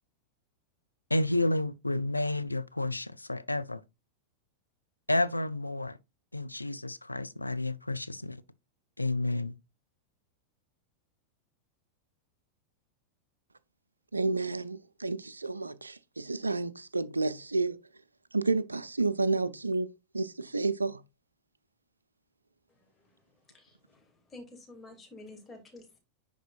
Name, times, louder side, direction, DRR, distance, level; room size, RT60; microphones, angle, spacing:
voice 1, 1.1-3.8 5.1-6.0 6.3-8.4 9.0-9.5, left 2 dB, 85° left, 0.4 m, -30 dB
voice 2, 14.1-17.8 18.3-21.0, right 3 dB, 80° right, 0.4 m, -30 dB
voice 3, 22.7-23.1 23.5-26.0, left 2 dB, 15° left, 2.3 m, -51 dB
10.0 x 3.9 x 2.4 m
figure-of-eight pair, 90°, 0 cm